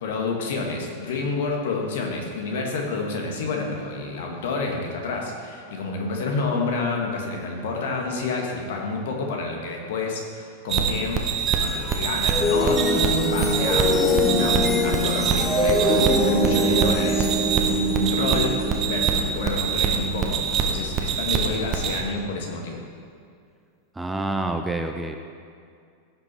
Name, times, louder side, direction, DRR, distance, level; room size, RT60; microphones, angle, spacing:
voice 1, 0.0-11.3 11.6-17.3 17.5-22.8, left 3 dB, 55° left, 1 dB, 1.9 m, -29 dB
sound 1, 10.7-22.0, right 6 dB, 30° right, 1.1 m, -25 dB
sound 2, 11.2-20.5, equal, 10° left, 1.5 m, -24 dB
voice 2, 24.0-25.2, right 2 dB, 10° right, 5 dB, 0.6 m, -27 dB
16.5 x 6.0 x 4.5 m, 2.3 s
figure-of-eight pair, 90°, 0 cm